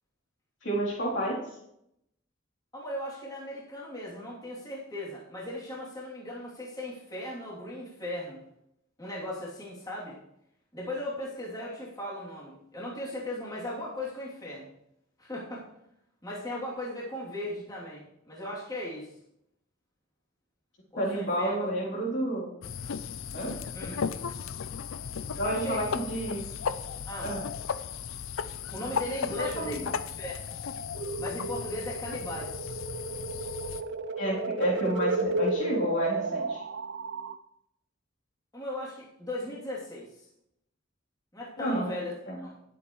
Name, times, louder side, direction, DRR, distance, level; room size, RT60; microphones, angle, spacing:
voice 1, 0.6-1.4 21.0-22.5 23.3-23.5 25.4-26.4 27.2-27.4 29.4-29.8 34.2-36.6 41.6-41.9 42.3-42.4, right 1 dB, 65° left, -4 dB, 3.5 m, -30 dB
voice 2, 2.7-8.4 9.0-10.2 10.7-14.7 15.2-15.6 16.2-19.1 20.9-21.9 23.7-24.0 25.4-26.1 27.1-27.3 28.7-30.4 31.2-32.5 38.5-40.3 41.3-42.6, left 1 dB, 20° left, -6 dB, 3.0 m, -37 dB
sound 1, 22.6-33.8, left 6 dB, 85° left, 0.5 m, -36 dB
sound 2, 30.9-37.4, right 2 dB, 60° right, 0.5 m, -33 dB
18.5 x 7.8 x 3.2 m, 0.79 s
head